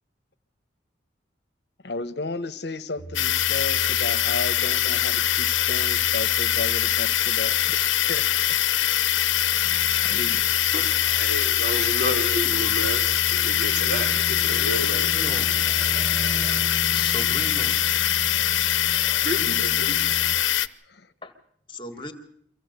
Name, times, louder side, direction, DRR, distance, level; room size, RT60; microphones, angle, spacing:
voice 1, 1.8-8.2 10.0-10.4 20.9-21.1, left 2 dB, 60° left, 1.1 m, -33 dB
sound 1, 3.0-20.4, right 1 dB, 45° right, 1.6 m, -37 dB
sound 2, 3.1-20.7, left 12 dB, 85° left, 0.8 m, -23 dB
voice 2, 10.7-15.1 19.2-20.1, equal, 60° right, 3.9 m, -31 dB
voice 3, 15.2-15.5 16.7-17.8 21.2-21.3 21.7-22.1, left 1 dB, 25° left, 1.9 m, -36 dB
24.0 x 16.0 x 8.1 m
head